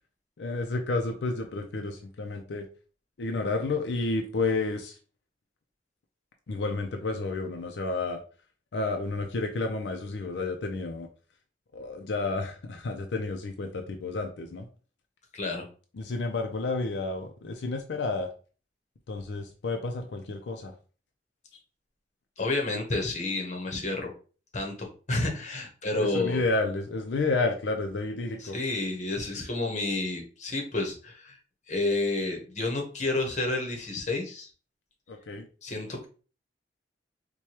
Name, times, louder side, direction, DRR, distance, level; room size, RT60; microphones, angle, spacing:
voice 1, 0.4-2.7 3.2-5.0 6.5-8.2 8.7-11.1 11.7-14.7 15.9-18.3 19.1-20.7 26.0-28.6 35.1-35.5, left 3 dB, 80° left, 3 dB, 0.5 m, -31 dB
voice 2, 15.3-15.7 22.4-24.1 24.5-26.4 28.5-31.4 31.7-34.5 35.6-36.1, left 2 dB, 40° left, 2 dB, 0.9 m, -30 dB
4.6 x 2.2 x 2.8 m, 0.38 s
head